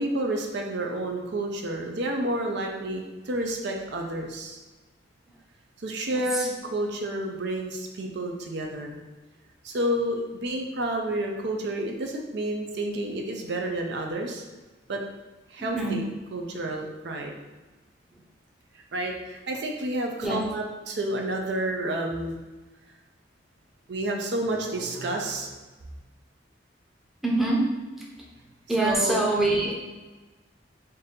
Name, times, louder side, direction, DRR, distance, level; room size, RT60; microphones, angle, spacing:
voice 1, 0.0-4.6 5.8-9.0 9.6-14.4 14.9-15.0 15.5-17.4 18.9-22.4 23.9-25.6 28.7-29.3, right 1 dB, 65° right, 2 dB, 0.5 m, -30 dB
voice 2, 15.6-16.0 20.2-20.4 27.2-27.7 28.7-29.7, right 2 dB, ahead, -4 dB, 0.6 m, -24 dB
4.0 x 2.7 x 3.7 m, 1.2 s
head